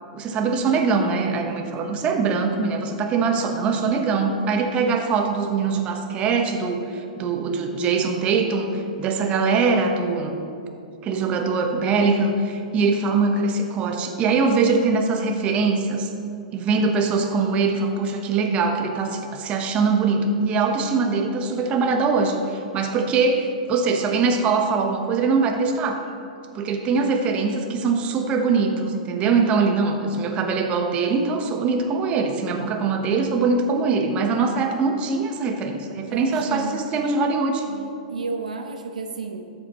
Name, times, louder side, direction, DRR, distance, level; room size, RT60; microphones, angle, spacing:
voice 1, 0.1-10.3 11.0-16.1 16.5-26.0 26.5-37.7, right 4 dB, 30° right, 4 dB, 1.1 m, -22 dB
voice 2, 21.5-22.0 36.0-36.8 37.6-39.5, right 4 dB, 85° right, 5 dB, 0.7 m, -33 dB
13.0 x 7.9 x 3.0 m, 2.5 s
hypercardioid pair, 120°, 4 cm